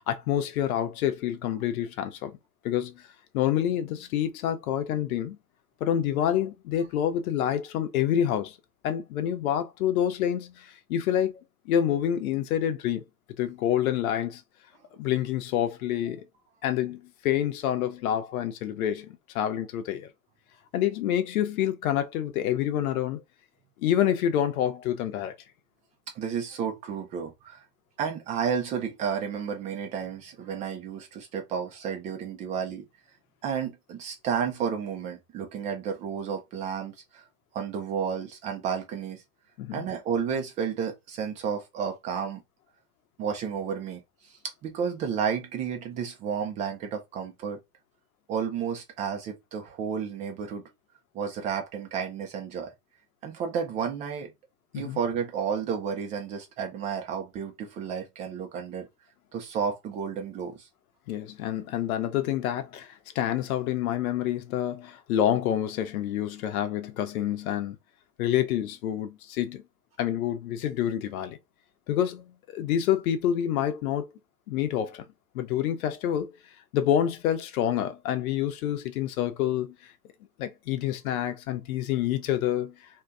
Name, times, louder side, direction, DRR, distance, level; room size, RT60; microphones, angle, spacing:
voice 1, 0.0-2.4 2.6-3.1 3.3-5.4 5.8-8.6 8.8-11.4 11.7-13.0 13.4-14.4 15.0-16.3 16.6-20.1 20.7-23.2 23.8-25.4 39.6-39.8 54.7-55.0 61.1-62.9 63.1-67.8 68.2-69.6 70.0-71.4 71.9-74.1 74.5-75.0 75.3-76.3 76.7-79.9 80.4-82.8, left 10 dB, 60° left, 0.8 m, -27 dB
voice 2, 26.1-27.6 28.0-32.8 33.4-37.2 37.5-39.2 39.7-42.4 43.2-44.0 44.6-47.6 48.3-50.6 51.1-52.7 53.2-54.3 54.7-58.9 59.3-60.7, right 7 dB, 15° right, 0.4 m, -31 dB
2.6 x 2.3 x 3.4 m
hypercardioid pair, 110°, 47 cm